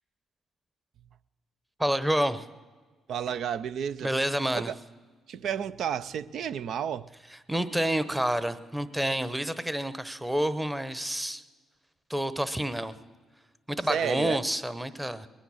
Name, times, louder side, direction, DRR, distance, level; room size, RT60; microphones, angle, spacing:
voice 1, 1.8-2.4 4.0-4.7 7.5-11.4 12.1-12.9 13.7-15.3, right 1 dB, 10° right, 14 dB, 0.9 m, -28 dB
voice 2, 3.1-4.1 4.5-4.7 5.3-7.1 13.9-14.4, right 8 dB, 70° right, 15 dB, 0.5 m, -31 dB
20.5 x 10.0 x 6.4 m, 1.4 s
cardioid pair, 90°, 0 cm